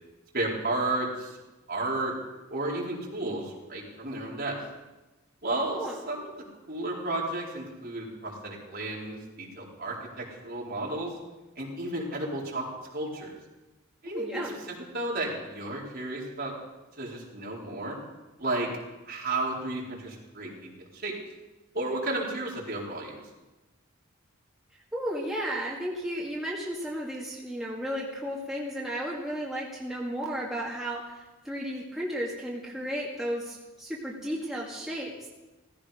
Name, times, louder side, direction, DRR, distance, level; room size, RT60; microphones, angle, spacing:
voice 1, 0.3-1.3 1.7-2.2 2.5-4.5 5.4-6.3 6.7-11.1 11.6-12.7 12.9-13.3 14.0-14.5 14.9-16.5 17.0-18.0 18.4-18.7 19.1-21.1 21.7-23.2, right 2 dB, 50° right, -4 dB, 4.3 m, -32 dB
voice 2, 14.0-14.6 24.9-31.1 31.4-35.1, equal, ahead, -5 dB, 2.1 m, -33 dB
17.5 x 15.0 x 5.1 m, 1.1 s
head